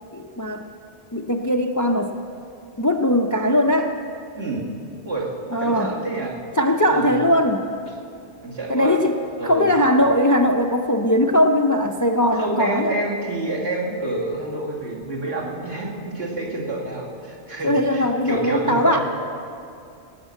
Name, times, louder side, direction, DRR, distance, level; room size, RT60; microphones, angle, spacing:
voice 1, 0.1-0.6 1.1-2.1 2.8-3.9 5.5-5.9 6.6-7.6 8.7-9.1 9.4-13.0 17.6-19.0, left 1 dB, 25° left, 4 dB, 0.4 m, -19 dB
voice 2, 5.6-6.4 6.9-7.1 8.4-9.0 9.4-9.7 12.4-19.0, right 2 dB, 70° right, -5 dB, 2.7 m, -28 dB
18.0 x 6.5 x 8.3 m, 2.5 s
omnidirectional pair, 1.1 m